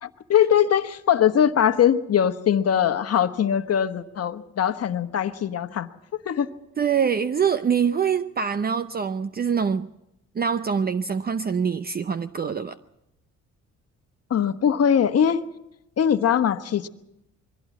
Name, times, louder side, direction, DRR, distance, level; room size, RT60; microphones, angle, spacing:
voice 1, 0.0-6.5 14.3-15.4 16.0-16.9, left 9 dB, 55° left, 1.2 m, -21 dB
voice 2, 6.8-9.9 10.3-12.8, right 7 dB, 30° right, 0.6 m, -24 dB
23.0 x 16.0 x 7.3 m
cardioid pair, 90°, 30 cm